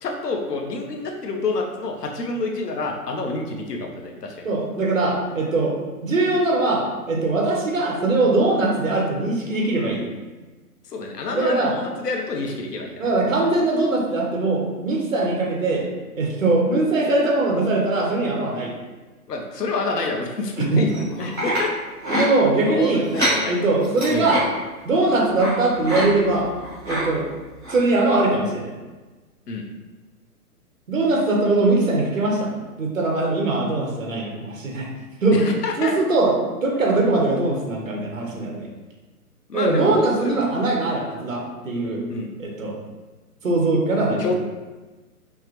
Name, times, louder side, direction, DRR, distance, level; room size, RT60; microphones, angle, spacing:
voice 1, 0.0-4.5 10.9-13.1 19.3-21.7 22.7-23.5 24.1-24.3 29.5-29.6 35.3-35.9 39.5-40.4 42.1-42.3 44.2-44.4, left 3 dB, 80° left, 2 dB, 0.9 m, -27 dB
voice 2, 4.4-10.1 11.3-11.7 13.0-15.9 16.1-18.7 20.6-20.8 22.1-23.0 23.5-24.4 24.8-26.5 26.9-27.3 27.7-28.7 30.9-32.5 32.8-34.9 35.2-38.7 39.5-42.0 42.4-42.8 43.4-44.2, right 2 dB, 55° right, 0 dB, 1.0 m, -21 dB
sound 1, 20.9-21.6 22.0-22.3 23.0-23.4 23.8-24.4 25.4-25.5 25.8-26.0 26.4-27.0 27.6-27.8 28.2-28.3, right 1 dB, ahead, 1.1 m, -25 dB
5.5 x 2.1 x 3.0 m, 1.2 s
hypercardioid pair, 180°, 47 cm